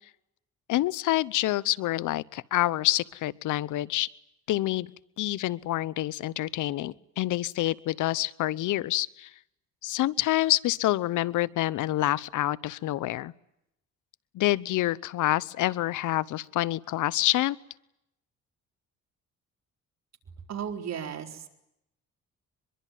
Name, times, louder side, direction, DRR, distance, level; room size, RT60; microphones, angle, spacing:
voice 1, 0.7-4.1 4.5-4.9 5.2-9.3 9.8-13.3 14.3-17.6, left 15 dB, 85° left, 20 dB, 0.9 m, -27 dB
voice 2, 20.5-21.5, right 8 dB, 60° right, 4 dB, 4.3 m, -35 dB
24.0 x 23.0 x 9.3 m, 0.81 s
cardioid pair, 90°, 30 cm